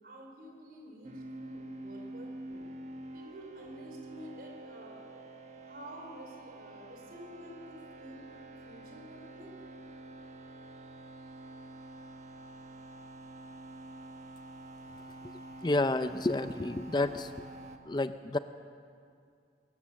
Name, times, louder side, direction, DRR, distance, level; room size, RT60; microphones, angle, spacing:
voice 1, 0.0-2.7 3.1-5.2 5.6-8.3 8.6-9.5, equal, 55° right, 0 dB, 4.9 m, -50 dB
sound 1, 1.0-17.8, right 2 dB, 40° right, 1.4 m, -47 dB
voice 2, 15.6-17.3 17.9-18.4, left 2 dB, 25° left, 11 dB, 0.5 m, -30 dB
23.0 x 19.0 x 7.2 m, 2.3 s
head